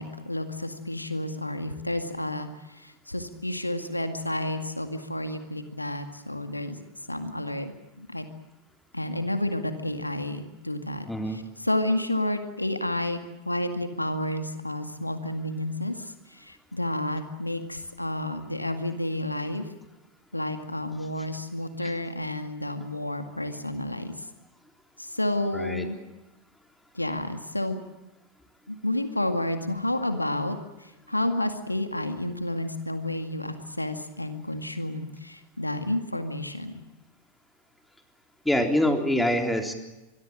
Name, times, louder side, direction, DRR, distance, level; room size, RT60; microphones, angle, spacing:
voice 1, 0.0-6.8 7.1-8.3 8.9-13.2 13.5-19.7 20.3-24.1 25.0-26.0 26.9-27.8 28.7-36.8, left 1 dB, 85° left, 8 dB, 2.1 m, -30 dB
voice 2, 11.1-11.4 21.8-21.9 25.5-25.9 38.5-39.7, left 1 dB, 5° left, 4 dB, 3.7 m, -25 dB
25.5 x 22.0 x 7.5 m, 1.0 s
figure-of-eight pair, 90°, 0 cm